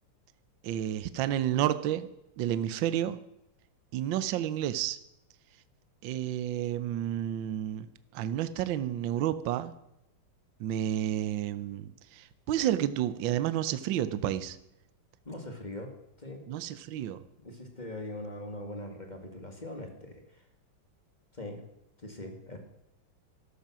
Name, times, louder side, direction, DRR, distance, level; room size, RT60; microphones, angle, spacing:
voice 1, 0.6-2.1 2.4-3.2 3.9-5.0 6.0-7.9 8.1-9.7 10.6-14.6 16.5-17.2, right 11 dB, 70° right, 13 dB, 1.4 m, -30 dB
voice 2, 15.2-15.9 16.2-16.5 17.4-20.4 21.3-21.6 22.0-22.6, left 1 dB, 20° left, 4 dB, 1.9 m, -41 dB
13.0 x 12.0 x 6.2 m, 0.83 s
omnidirectional pair, 2.4 m